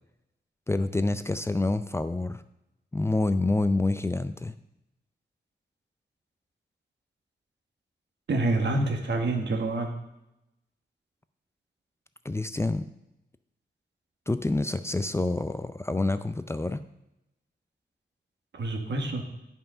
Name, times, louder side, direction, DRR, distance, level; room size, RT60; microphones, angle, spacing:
voice 1, 0.7-2.4 2.9-4.5 12.2-12.8 14.3-16.8, left 2 dB, 15° left, 11 dB, 0.4 m, -27 dB
voice 2, 8.3-9.9 18.5-19.2, right 2 dB, 75° right, 4 dB, 1.6 m, -27 dB
11.5 x 5.5 x 5.6 m, 0.88 s
wide cardioid pair, 110°, 18 cm